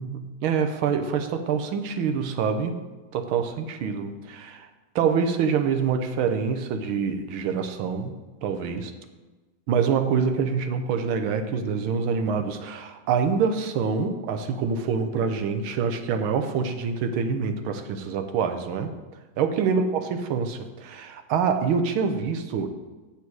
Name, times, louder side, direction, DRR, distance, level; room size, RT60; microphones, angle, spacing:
voice 1, 0.0-2.8 3.1-4.7 4.9-8.1 8.4-8.9 9.7-18.9 19.4-22.7, right 6 dB, 85° right, 7 dB, 1.6 m, -26 dB
8.6 x 7.1 x 4.6 m, 1.2 s
omnidirectional pair, 2.2 m